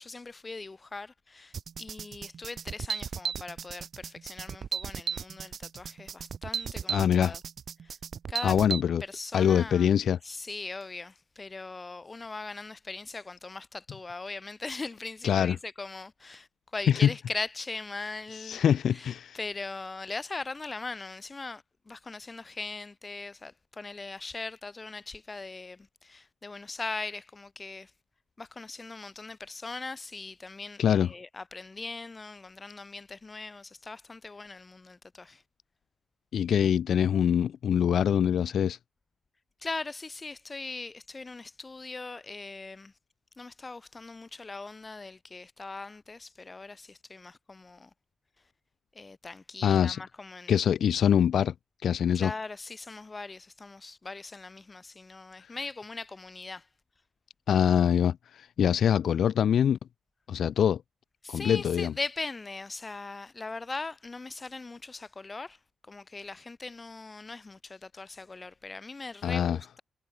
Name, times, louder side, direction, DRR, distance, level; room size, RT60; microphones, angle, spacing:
voice 1, 0.0-7.4 7.8-8.0 8.3-8.6 9.0-9.9 10.2-16.5 16.7-18.6 18.9-27.9 28.4-35.4 39.6-42.9 43.4-47.9 48.9-50.6 52.1-56.7 61.2-65.6 65.9-69.8, left 3 dB, 25° left, 2.8 m, -40 dB
sound 1, 1.5-8.8, right 7 dB, 50° right, 0.5 m, -35 dB
voice 2, 6.9-7.4 8.4-9.0 9.3-10.2 15.2-15.6 16.9-17.1 18.3-19.4 30.8-31.1 36.3-38.8 49.6-50.0 50.5-51.5 51.8-52.3 57.5-59.8 60.3-60.8 61.3-61.9 69.2-69.6, left 9 dB, 65° left, 0.4 m, -24 dB
cardioid pair, 130°, 0 cm